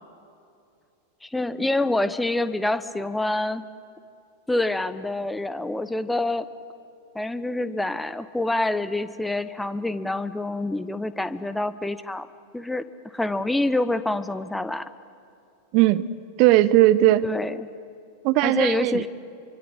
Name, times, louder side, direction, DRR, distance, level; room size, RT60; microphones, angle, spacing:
voice 1, 1.2-3.7 4.5-6.5 7.1-12.3 12.5-12.9 13.1-14.9 17.2-17.7 18.4-19.1, left 2 dB, 5° left, 13 dB, 1.0 m, -26 dB
voice 2, 15.7-16.1 16.4-17.3 18.2-19.0, right 15 dB, 45° right, 16 dB, 0.8 m, -18 dB
28.0 x 25.0 x 7.9 m, 2.6 s
figure-of-eight pair, 90°, 0 cm